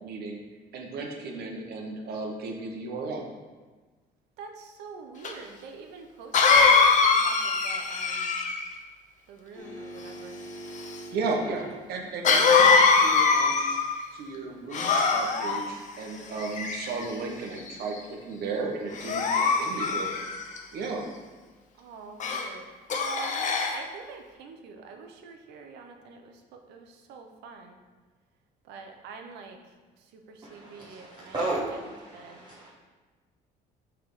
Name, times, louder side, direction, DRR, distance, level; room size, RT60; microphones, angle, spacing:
voice 1, 0.0-0.4 0.7-3.2 11.1-13.6 14.1-20.1 20.7-21.1, right 3 dB, 70° right, 1.1 m, -34 dB
voice 2, 4.4-8.4 9.3-10.4 11.2-11.7 19.4-20.2 21.8-22.6 22.9-27.8 28.7-29.6 30.3-32.4, right 5 dB, 85° right, 0.7 m, -45 dB
Cough, 5.2-5.3 6.3-8.7 12.2-14.0 14.7-15.6 16.4-17.1 17.7-18.0 19.0-20.6 22.2-22.5 22.9-23.8, left 4 dB, 45° left, 0.8 m, -22 dB
sound 1, 9.6-11.9 14.5-14.6, right 1 dB, 10° left, 1.0 m, -42 dB
voice 3, 30.4-32.7, right 2 dB, 25° right, 1.3 m, -34 dB
5.7 x 3.5 x 5.4 m
cardioid pair, 110°, 17 cm